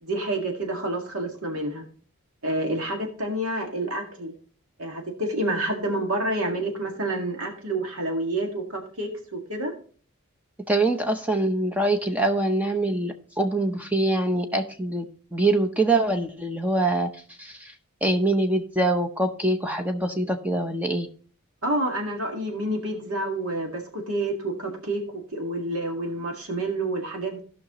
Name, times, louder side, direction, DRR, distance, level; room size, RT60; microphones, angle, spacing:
voice 1, 0.0-1.8 2.4-4.3 4.8-9.7 21.6-27.4, right 1 dB, 75° right, 2 dB, 2.0 m, -28 dB
voice 2, 10.7-17.1 17.4-17.7 18.0-21.1, right 2 dB, 5° right, 5 dB, 0.6 m, -24 dB
16.5 x 5.8 x 3.0 m, 0.43 s
head